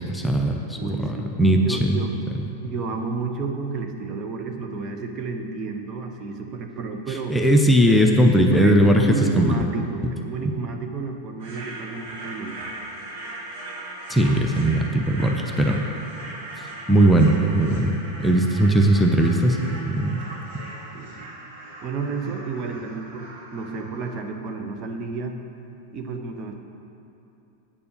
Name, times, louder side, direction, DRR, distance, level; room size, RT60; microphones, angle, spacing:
voice 1, 0.0-2.0 7.1-9.6 14.1-15.8 16.9-17.9 18.2-20.2 20.5-20.6, right 1 dB, 5° left, 1 dB, 0.7 m, -19 dB
voice 2, 0.8-2.2 2.6-7.4 7.9-12.7 20.9-21.3 21.8-25.4 25.9-26.5, right 4 dB, 30° right, 4 dB, 0.8 m, -31 dB
sound 1, 11.4-24.2, right 1 dB, 50° right, 1.7 m, -39 dB
8.5 x 6.8 x 6.8 m, 2.8 s
figure-of-eight pair, 90°, 0 cm